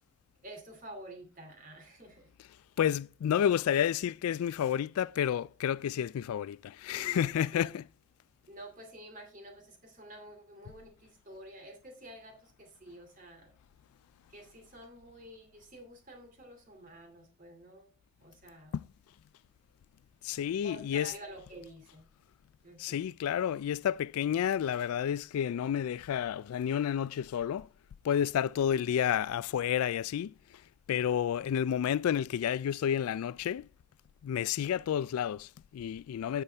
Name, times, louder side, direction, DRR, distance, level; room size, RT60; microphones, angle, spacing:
voice 1, 0.4-2.3 6.9-7.8 8.5-13.5 14.3-17.9 18.2-18.8 20.6-22.1 22.6-23.1, right 1 dB, 35° right, 2.4 m, -49 dB
voice 2, 2.8-7.8 18.7-18.9 20.2-21.1 22.8-27.7 28.0-30.6 30.9-33.7 34.2-36.4, left 9 dB, 85° left, 0.3 m, -30 dB
9.8 x 6.9 x 3.4 m
head